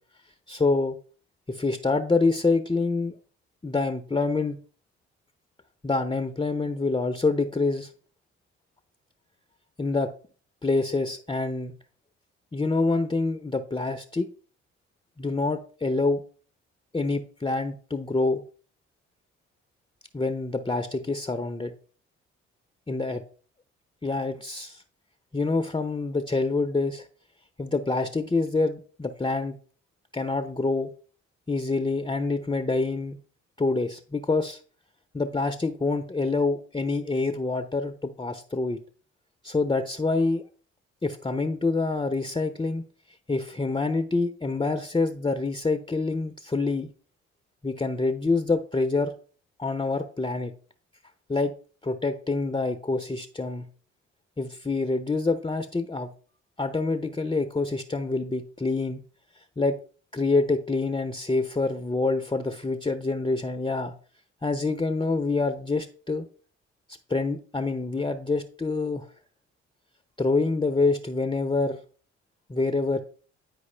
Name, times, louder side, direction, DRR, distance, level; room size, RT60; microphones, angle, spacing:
voice 1, 0.5-1.0 1.5-3.1 3.6-4.6 5.8-7.9 9.8-10.1 10.6-11.7 12.5-14.3 15.2-16.2 16.9-18.4 20.1-21.7 22.9-23.2 24.0-24.8 25.3-27.0 27.6-29.6 30.1-30.9 31.5-33.2 33.6-34.6 35.1-38.8 39.4-40.4 41.0-42.8 43.3-46.9 47.6-49.1 49.6-50.5 51.3-51.5 51.8-53.7 54.4-56.1 56.6-59.0 59.6-59.8 60.1-63.9 64.4-66.2 67.1-69.1 70.2-71.8 72.5-73.0, left 3 dB, 15° left, 8 dB, 0.7 m, -26 dB
9.6 x 4.8 x 3.3 m, 0.42 s
hypercardioid pair, 50°, 33 cm